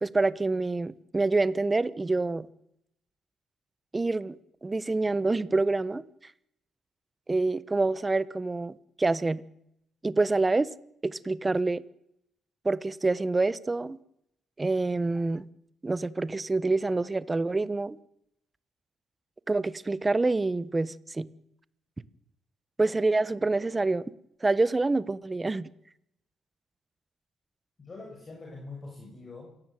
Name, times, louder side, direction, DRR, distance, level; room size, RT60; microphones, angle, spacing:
voice 1, 0.0-2.5 3.9-4.3 4.6-6.0 7.3-9.4 10.0-10.7 11.0-11.8 12.6-14.0 14.6-15.4 15.8-18.0 19.5-21.3 22.8-24.0 24.4-25.7, right 3 dB, 20° right, 1.2 m, -27 dB
voice 2, 27.8-29.5, left 3 dB, 35° left, 6.7 m, -43 dB
27.5 x 17.0 x 9.3 m
cardioid pair, 90°, 0 cm